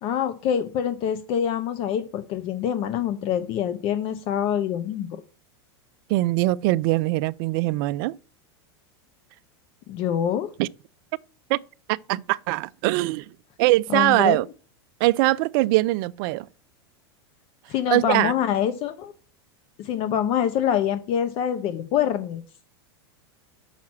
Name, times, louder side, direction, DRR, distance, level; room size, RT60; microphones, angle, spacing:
voice 1, 0.0-5.1 9.9-10.5 13.9-14.4 17.7-19.1 19.8-22.4, left 9 dB, 45° left, 0.8 m, -25 dB
voice 2, 6.1-8.2 10.6-10.7 11.5-11.6 11.9-14.5 15.0-16.5 17.9-18.3, right 19 dB, 55° right, 0.4 m, -22 dB
6.2 x 5.8 x 7.2 m
supercardioid pair, 125°, 14 cm